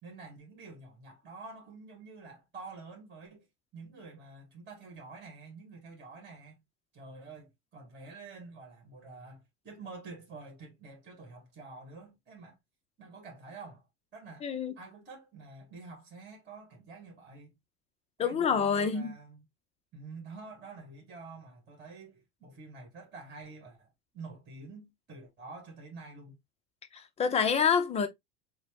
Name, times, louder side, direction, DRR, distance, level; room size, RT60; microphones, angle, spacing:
voice 1, 0.0-3.5 3.7-6.6 6.9-12.6 13.0-14.5 14.8-17.5 18.2-19.4 19.9-23.9 24.1-26.4, right 3 dB, 20° right, 1.8 m, -48 dB
voice 2, 14.4-14.7 18.2-19.1 26.9-28.1, left 6 dB, 15° left, 0.5 m, -27 dB
6.5 x 2.2 x 2.9 m
figure-of-eight pair, 80°, 47 cm